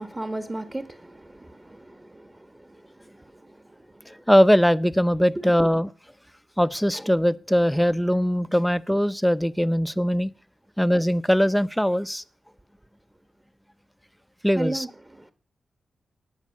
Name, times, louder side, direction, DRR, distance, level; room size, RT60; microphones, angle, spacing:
voice 1, 0.0-4.2 5.3-5.4 14.6-15.3, right 2 dB, 20° right, 1.3 m, -36 dB
voice 2, 4.1-5.9 6.6-10.3 10.8-12.2 14.4-14.8, equal, 5° left, 0.7 m, -21 dB
17.5 x 6.4 x 9.7 m
cardioid pair, 75°, 0 cm